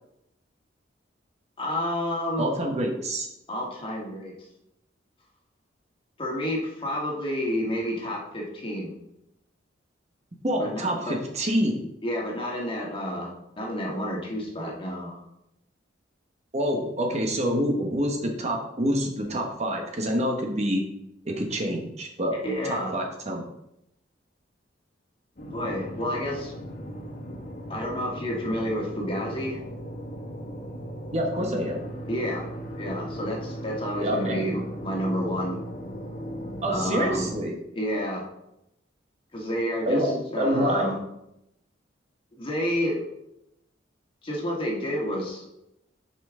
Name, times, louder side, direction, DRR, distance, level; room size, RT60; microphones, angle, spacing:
voice 1, 1.6-2.5 3.5-4.3 6.2-9.0 10.6-11.2 12.0-15.2 22.4-23.0 25.5-26.5 27.7-29.6 32.1-32.5 32.8-35.6 36.7-37.3 37.8-38.2 39.3-41.0 42.4-43.0 44.2-45.4, equal, 30° left, -2 dB, 1.7 m, -30 dB
voice 2, 2.4-3.3 10.4-11.8 16.5-20.8 21.3-22.4 22.7-23.4 31.1-31.8 34.0-34.4 36.6-37.5 39.9-41.0, equal, 35° right, 1 dB, 1.0 m, -27 dB
sound 1, 25.4-37.4, equal, 50° left, 1.5 m, -37 dB
8.6 x 5.4 x 3.6 m, 0.84 s
head